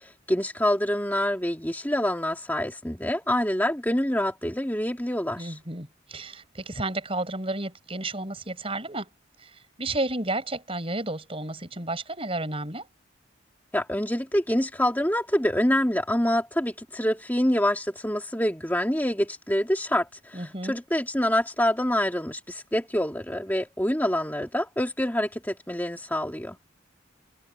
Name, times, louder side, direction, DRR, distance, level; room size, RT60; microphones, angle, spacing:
voice 1, 0.0-5.5 13.7-26.6, left 1 dB, 10° left, 2.3 m, -26 dB
voice 2, 5.4-9.1 9.4-9.5 9.8-12.9 20.3-20.8, right 2 dB, 30° right, 5.8 m, -32 dB
head